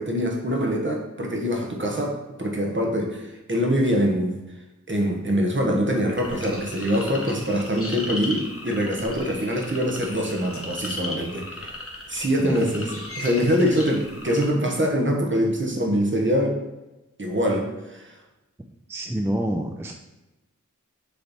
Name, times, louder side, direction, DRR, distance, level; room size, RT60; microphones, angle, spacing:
voice 1, 0.0-4.4 4.9-11.7 12.1-16.6 17.2-18.1, equal, 40° right, 0 dB, 1.2 m, -24 dB
sound 1, 6.1-14.5, left 1 dB, 50° left, 1.1 m, -36 dB
voice 2, 18.9-19.9, right 1 dB, 10° right, 2 dB, 0.4 m, -27 dB
6.9 x 3.3 x 4.1 m, 1.0 s
wide cardioid pair, 55°, 30 cm